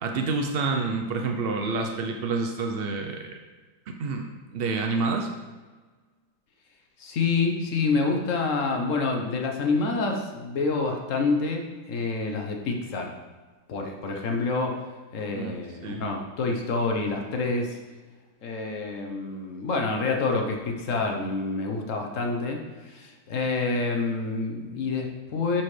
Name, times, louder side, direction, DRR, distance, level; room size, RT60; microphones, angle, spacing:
voice 1, 0.0-3.4 3.9-5.3 15.3-16.0, right 3 dB, 85° right, 3 dB, 0.5 m, -28 dB
voice 2, 7.0-13.1 13.7-14.8 15.1-17.8 18.4-25.6, left 3 dB, 55° left, 2 dB, 1.1 m, -27 dB
10.5 x 4.3 x 3.2 m, 1.4 s
omnidirectional pair, 1.8 m